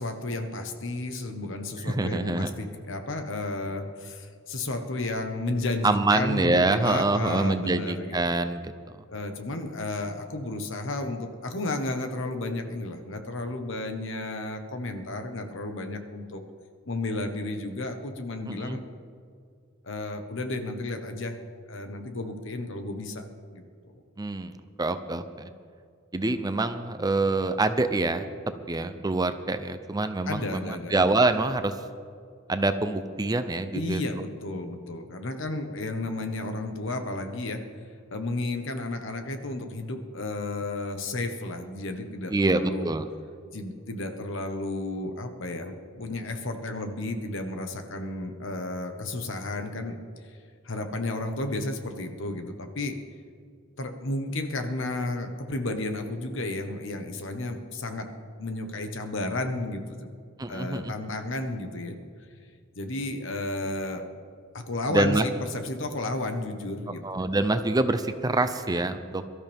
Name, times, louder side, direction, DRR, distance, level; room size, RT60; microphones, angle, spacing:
voice 1, 0.0-8.4 9.1-16.4 16.8-18.8 19.8-21.4 21.7-23.2 23.5-24.0 30.3-30.9 33.7-37.6 38.1-42.9 43.5-50.0 50.3-50.4 50.6-53.0 53.8-58.0 58.4-60.1 60.5-62.0 62.7-64.0 64.5-67.2, left 2 dB, 65° left, 6 dB, 1.3 m, -32 dB
voice 2, 1.8-2.5 5.8-9.0 18.5-18.8 24.2-25.5 26.1-28.2 28.7-31.7 32.5-34.0 42.3-43.1 60.4-60.9 64.9-65.3 67.0-69.2, right 2 dB, 20° right, 10 dB, 0.6 m, -26 dB
23.0 x 13.0 x 3.6 m, 2.2 s
head